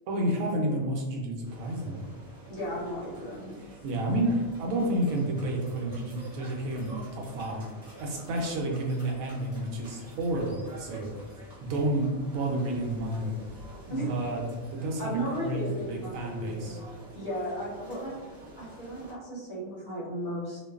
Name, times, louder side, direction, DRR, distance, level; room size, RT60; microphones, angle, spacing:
voice 1, 0.1-2.0 3.6-7.7 8.0-13.3 13.9-14.4 14.7-16.8, right 1 dB, 85° right, 0 dB, 1.0 m, -30 dB
sound 1, 1.4-19.1, right 2 dB, 35° right, 0.9 m, -48 dB
voice 2, 2.5-3.6 13.9-14.2 15.0-16.8 17.1-18.1 18.6-20.6, equal, 50° left, -8 dB, 0.9 m, -35 dB
2.5 x 2.3 x 2.3 m, 1.3 s
omnidirectional pair, 1.4 m